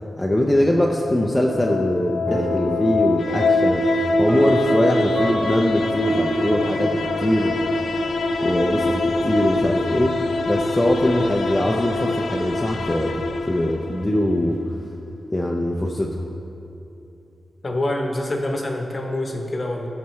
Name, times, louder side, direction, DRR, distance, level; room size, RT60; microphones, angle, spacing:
voice 1, 0.2-3.9 4.2-7.6 8.4-10.2 10.5-14.6 15.3-16.2, left 1 dB, 10° left, -1 dB, 0.5 m, -22 dB
sound 1, 1.3-14.2, left 2 dB, 80° left, 0.5 m, -24 dB
sound 2, 2.3-11.4, right 1 dB, 50° right, 1.7 m, -30 dB
voice 2, 17.6-19.9, left 1 dB, 30° left, 2 dB, 0.9 m, -26 dB
17.0 x 5.8 x 3.1 m, 2.9 s
wide cardioid pair, 170°, 0 cm